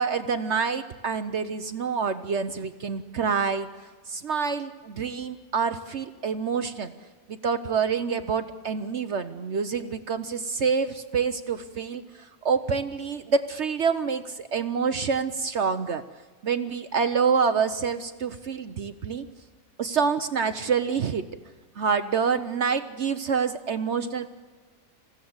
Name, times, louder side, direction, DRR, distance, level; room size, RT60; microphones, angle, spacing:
voice 1, 0.0-3.7 4.1-6.9 7.3-12.0 12.4-16.0 16.4-19.2 19.8-21.3 21.8-24.3, right 6 dB, 55° right, 10 dB, 1.1 m, -27 dB
27.5 x 16.0 x 8.0 m, 1.4 s
omnidirectional pair, 1.5 m